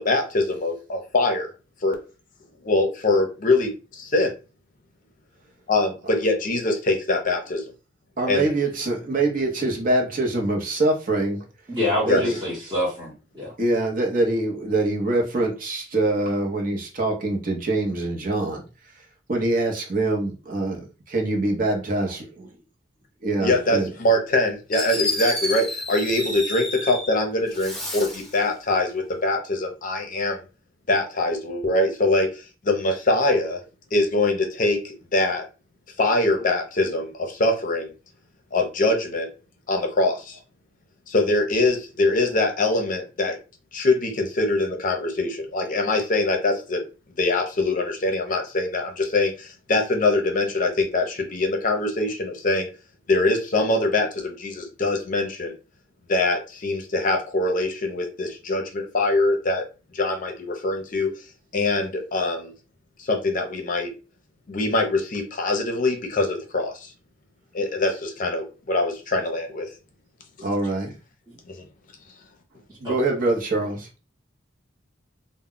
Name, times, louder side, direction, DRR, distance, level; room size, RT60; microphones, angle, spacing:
voice 1, 0.0-1.5 1.8-1.9 2.6-4.3 5.7-7.6 8.3-8.5 12.1-12.2 23.4-30.4 30.9-33.6 33.9-34.8 35.1-35.4 36.0-37.9 38.5-39.3 39.7-40.4 41.1-43.4 43.7-46.8 47.2-52.7 53.1-55.5 56.1-59.6 59.9-61.1 61.5-62.5 63.0-63.9 64.5-66.9 67.5-69.7 71.6-71.7, left 2 dB, 45° left, 4 dB, 0.6 m, -23 dB
voice 2, 8.2-11.4 12.0-12.4 13.6-18.6 19.3-22.5 23.2-23.9 70.4-70.9 72.8-73.9, right 2 dB, 50° right, 1 dB, 0.7 m, -24 dB
voice 3, 11.7-13.5 71.3-71.4 72.8-73.0, left 1 dB, 25° right, -7 dB, 0.9 m, -27 dB
Fireworks, 24.3-24.4 24.7-27.1 27.5-28.3, left 1 dB, 5° left, 0.8 m, -30 dB
2.2 x 2.0 x 3.6 m, 0.32 s
head